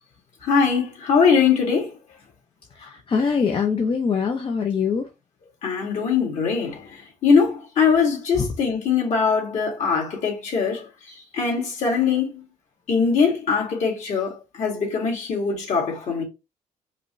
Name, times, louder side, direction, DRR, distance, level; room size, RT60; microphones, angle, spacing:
voice 1, 0.4-2.0 5.6-10.9 11.3-12.4 12.9-16.2, left 5 dB, 60° left, 2.0 m, -22 dB
voice 2, 2.8-5.1 8.4-8.5, left 6 dB, 35° left, 0.7 m, -23 dB
5.0 x 2.2 x 3.0 m
cardioid pair, 100°, 14 cm